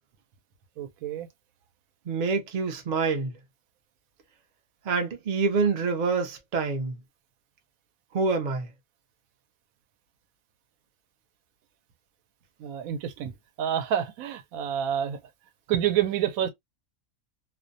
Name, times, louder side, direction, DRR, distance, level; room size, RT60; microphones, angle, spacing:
voice 1, 0.8-1.3 12.6-13.3 13.6-15.2 15.7-16.5, right 10 dB, 85° right, 1.0 m, -28 dB
voice 2, 2.1-3.3 4.9-6.9 8.1-8.7, right 4 dB, 55° right, 0.5 m, -26 dB
2.5 x 2.1 x 2.5 m
omnidirectional pair, 1.4 m